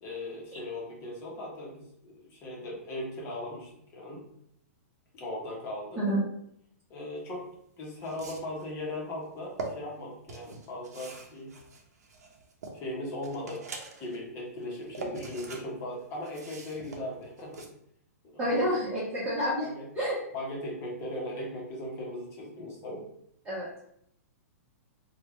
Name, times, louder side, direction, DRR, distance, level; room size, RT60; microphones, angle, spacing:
voice 1, 0.0-4.2 5.1-6.0 6.9-7.5 7.8-11.5 12.7-13.6 14.0-17.7 18.3-18.7 19.6-19.9 20.3-23.1, left 1 dB, 30° left, -4 dB, 1.0 m, -38 dB
sound 1, 7.3-7.4 8.0-8.6 9.3-9.7 10.3-12.8 13.2-14.2 14.6-15.6 15.9-17.7, right 3 dB, 80° right, 0.7 m, -43 dB
voice 2, 18.4-19.7 20.0-20.2 23.5-23.7, equal, 15° right, -10 dB, 1.1 m, -28 dB
3.3 x 2.3 x 3.0 m, 0.70 s
hypercardioid pair, 140°, 9 cm